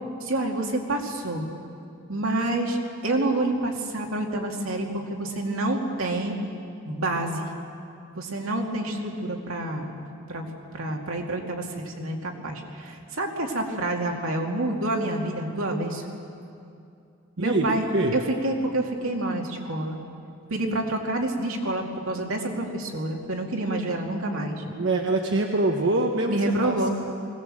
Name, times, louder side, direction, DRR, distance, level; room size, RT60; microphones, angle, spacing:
voice 1, 0.2-1.5 2.1-2.8 3.0-6.4 6.9-7.5 8.1-10.0 10.3-10.5 10.7-16.0 17.4-17.8 18.1-20.0 20.5-24.6 26.3-26.9, right 2 dB, 80° right, 1 dB, 2.3 m, -28 dB
voice 2, 17.4-18.1 24.7-26.9, right 2 dB, 60° right, 2 dB, 1.1 m, -25 dB
20.5 x 17.5 x 7.7 m, 2.5 s
head